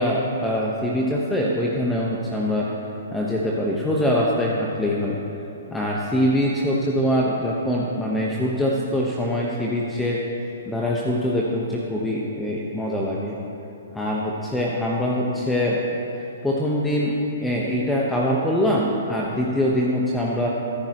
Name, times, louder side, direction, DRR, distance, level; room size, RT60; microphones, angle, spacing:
voice 1, 0.0-2.7 3.1-5.2 5.7-10.2 10.7-13.4 13.9-15.9 16.4-17.2 17.4-20.5, left 1 dB, 5° left, -4 dB, 1.3 m, -23 dB
23.5 x 10.5 x 3.1 m, 2.8 s
hypercardioid pair, 125°, 0 cm